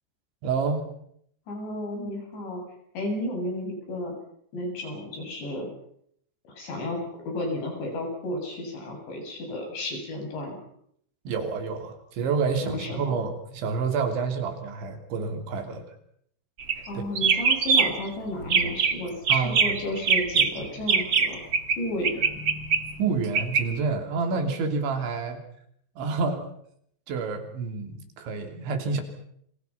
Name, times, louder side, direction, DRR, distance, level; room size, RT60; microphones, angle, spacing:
voice 1, 0.4-0.9 11.3-15.9 19.3-19.6 23.0-25.4 26.0-26.5 27.1-29.0, right 4 dB, 85° right, 6 dB, 5.4 m, -28 dB
voice 2, 1.5-2.6 2.9-4.1 4.5-5.7 6.5-10.6 12.6-13.0 16.9-21.4 21.8-22.4, left 1 dB, 70° left, 2 dB, 10.0 m, -32 dB
sound 1, 16.6-16.9 17.2-18.1 18.4-18.9 19.3-21.8 22.0-23.6, right 5 dB, 65° right, 1.1 m, -23 dB
29.0 x 26.5 x 5.8 m, 0.70 s
omnidirectional pair, 5.2 m